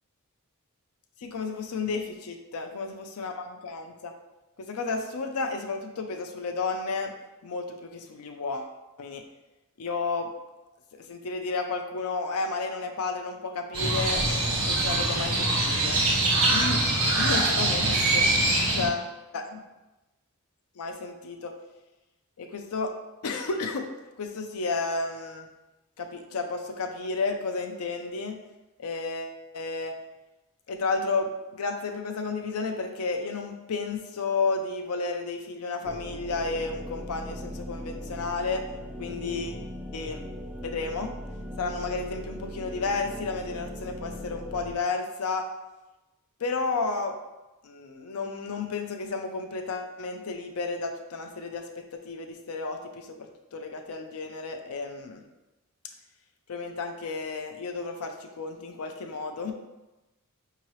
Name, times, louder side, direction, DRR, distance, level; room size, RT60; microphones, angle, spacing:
voice 1, 1.2-4.1 4.6-7.1 7.4-9.2 9.8-10.3 11.0-14.2 14.7-16.1 16.5-16.8 17.1-18.3 18.8-19.1 19.3-19.6 20.8-21.5 22.4-22.9 23.2-23.9 24.2-25.5 26.0-28.4 28.8-30.0 30.7-38.6 39.0-39.7 39.9-40.3 40.6-41.1 41.6-45.5 46.4-47.2 47.6-55.2 56.5-59.5, left 4 dB, 80° left, 5 dB, 0.5 m, -32 dB
Crow, 13.7-18.9, right 2 dB, 65° right, 1.1 m, -24 dB
sound 1, 35.8-44.7, equal, 5° right, 0.3 m, -39 dB
4.7 x 2.9 x 3.1 m, 1.0 s
head